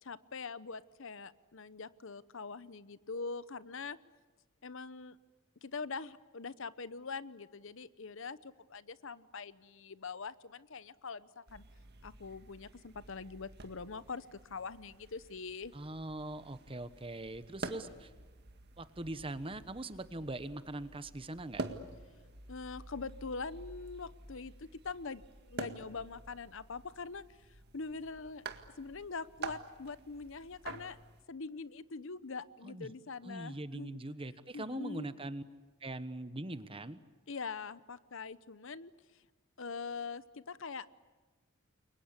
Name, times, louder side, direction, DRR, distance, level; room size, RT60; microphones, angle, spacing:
voice 1, 0.0-4.0 4.6-5.2 5.6-11.6 12.0-15.7 22.5-27.2 27.7-28.4 28.8-31.0 31.3-34.0 34.5-35.1 37.3-38.9 39.6-40.9, left 4 dB, 60° left, 16 dB, 0.8 m, -43 dB
sound 1, 11.5-31.2, right 3 dB, 50° right, 1.9 m, -48 dB
voice 2, 15.7-18.1 18.8-21.6 32.6-32.9 33.2-35.4 35.8-37.0, right 2 dB, 25° right, 13 dB, 1.2 m, -42 dB
29.5 x 23.5 x 8.3 m, 1.4 s
head